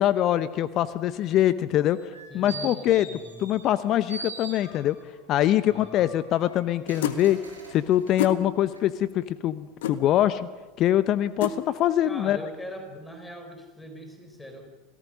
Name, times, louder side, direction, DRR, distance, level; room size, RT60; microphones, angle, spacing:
voice 1, 0.0-3.1 3.4-5.0 5.3-7.4 7.7-10.5 10.8-12.4, left 12 dB, 45° left, 15 dB, 0.8 m, -23 dB
sound 1, 1.9-3.8 4.1-5.1 5.6-8.2 8.7-8.8, right 4 dB, 90° right, 5.9 m, -43 dB
voice 2, 2.3-3.4 5.7-6.1 12.0-14.7, equal, 10° left, 5 dB, 4.5 m, -42 dB
sound 2, 7.0-7.2 8.2-8.4 9.8-10.0 11.4-11.6, left 9 dB, 65° left, 1.6 m, -27 dB
27.5 x 17.5 x 6.4 m, 1.3 s
figure-of-eight pair, 80°, 0 cm